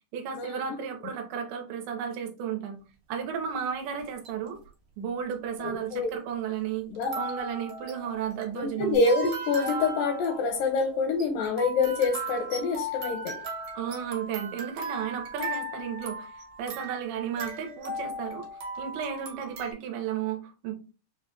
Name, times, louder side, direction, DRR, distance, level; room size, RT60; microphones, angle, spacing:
voice 1, 0.1-2.8 3.1-4.6 5.0-6.9 7.2-9.0 13.8-20.7, right 8 dB, 90° right, 4 dB, 2.5 m, -33 dB
sound 1, 4.0-4.5 5.3-5.4 6.9-19.7, right 1 dB, 65° right, 1.8 m, -37 dB
voice 2, 5.6-6.1 6.9-7.1 8.6-13.4, left 4 dB, 80° left, 4 dB, 2.1 m, -26 dB
sound 2, 8.9-10.9, right 2 dB, 65° left, 0.8 m, -44 dB
6.1 x 2.2 x 2.7 m, 0.34 s
omnidirectional pair, 4.3 m